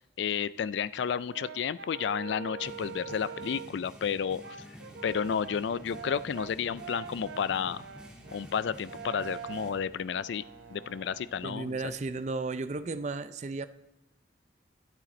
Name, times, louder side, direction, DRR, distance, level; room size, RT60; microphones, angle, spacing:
voice 1, 0.2-4.6 5.0-7.8 8.3-10.4 10.7-11.8, left 7 dB, 75° left, 17 dB, 0.3 m, -31 dB
Brass instrument, 1.3-3.8 4.4-11.4, right 7 dB, 85° right, 0.6 m, -44 dB
sound 1, 2.6-9.7, equal, 5° right, 1.6 m, -50 dB
sound 2, 5.0-11.9, equal, 90° left, 3.9 m, -58 dB
voice 2, 11.4-13.7, right 3 dB, 40° right, 12 dB, 0.5 m, -34 dB
21.5 x 7.6 x 4.2 m, 0.93 s
head